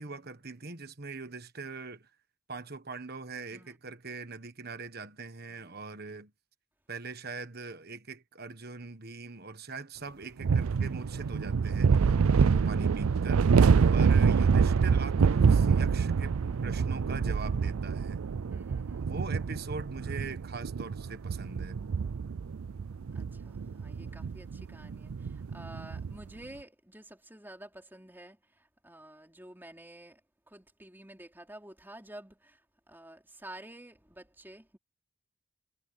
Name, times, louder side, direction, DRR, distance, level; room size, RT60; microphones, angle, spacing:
voice 1, 0.0-2.1 2.5-6.3 6.9-11.9 12.5-13.5 13.9-18.2 19.0-21.8, right 3 dB, 45° right, 1.5 m, -42 dB
voice 2, 3.5-3.9 5.5-5.8 18.5-19.2 23.1-30.2 30.5-32.6 32.9-34.8, right 1 dB, 10° right, 4.0 m, -50 dB
sound 1, 10.4-26.2, right 5 dB, 75° right, 0.4 m, -26 dB
head